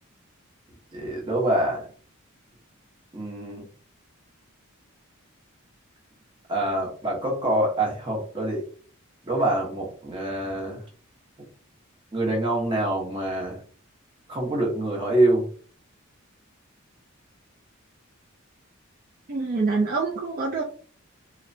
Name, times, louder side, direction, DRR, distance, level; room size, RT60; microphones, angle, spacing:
voice 1, 0.9-1.8 3.1-3.6 6.5-8.6 9.2-10.8 12.1-13.6 14.3-15.5, right 1 dB, 25° right, -1 dB, 0.9 m, -25 dB
voice 2, 19.3-20.6, right 3 dB, 45° right, -3 dB, 0.4 m, -25 dB
3.0 x 2.1 x 2.6 m, 0.43 s
head